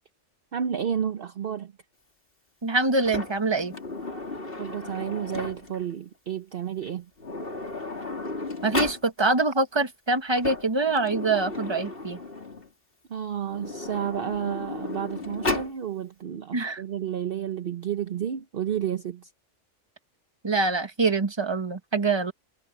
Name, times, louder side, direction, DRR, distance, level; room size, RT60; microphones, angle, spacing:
voice 1, 0.5-1.7 4.6-7.1 13.1-19.3, right 9 dB, 55° right, 0.9 m, -31 dB
voice 2, 2.6-3.8 8.6-12.2 16.5-16.8 20.4-22.3, right 3 dB, 20° right, 1.4 m, -25 dB
Sliding door, 3.0-5.8 6.8-6.9 7.2-9.0 10.2-12.7 13.5-15.8, left 2 dB, 50° left, 3.3 m, -34 dB
omnidirectional pair, 1.3 m